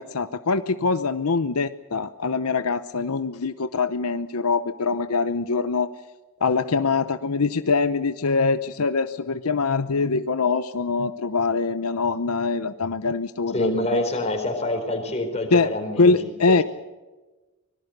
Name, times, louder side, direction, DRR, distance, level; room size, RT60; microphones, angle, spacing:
voice 1, 0.0-5.9 6.4-14.0 15.5-15.7 16.0-16.6, left 4 dB, 85° left, 12 dB, 0.8 m, -23 dB
voice 2, 13.5-16.6, left 1 dB, 30° left, 4 dB, 4.4 m, -26 dB
24.5 x 19.5 x 6.7 m, 1.2 s
head